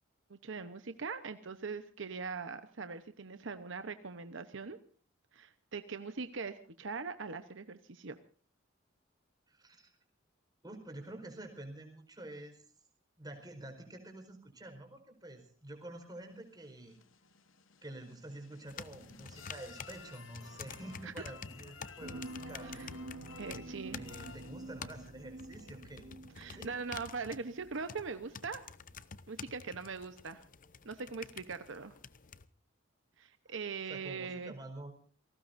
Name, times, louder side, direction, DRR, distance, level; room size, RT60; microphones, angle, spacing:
voice 1, 0.3-4.8 5.3-8.2 22.6-22.9 23.4-24.0 26.4-28.6 29.3-30.4 30.8-32.0 33.2-34.5, right 4 dB, 70° right, 9 dB, 1.0 m, -41 dB
voice 2, 9.5-9.9 10.6-12.6 13.2-17.0 17.8-22.8 23.9-26.0 26.5-26.7 33.4-33.5 33.9-34.9, right 1 dB, 20° right, 4 dB, 4.5 m, -48 dB
sound 1, 16.2-25.1, left 5 dB, 75° left, 1.1 m, -55 dB
sound 2, 18.7-32.4, left 6 dB, 45° left, 0.8 m, -50 dB
sound 3, 22.0-28.0 28.4-28.5, right 2 dB, 85° right, 1.9 m, -48 dB
28.5 x 18.5 x 2.6 m, 0.42 s
head